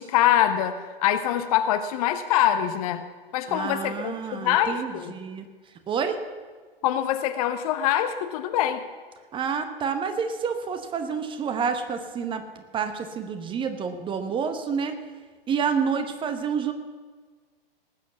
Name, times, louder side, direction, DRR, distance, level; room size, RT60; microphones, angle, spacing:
voice 1, 0.0-3.0 3.3-5.1 6.8-8.8, left 11 dB, 40° left, 10 dB, 0.9 m, -24 dB
voice 2, 3.5-5.5 5.9-6.2 9.3-12.4 12.7-15.0 15.5-16.7, right 6 dB, 15° right, 8 dB, 0.9 m, -28 dB
18.5 x 7.4 x 7.0 m, 1.5 s
figure-of-eight pair, 105°, 29 cm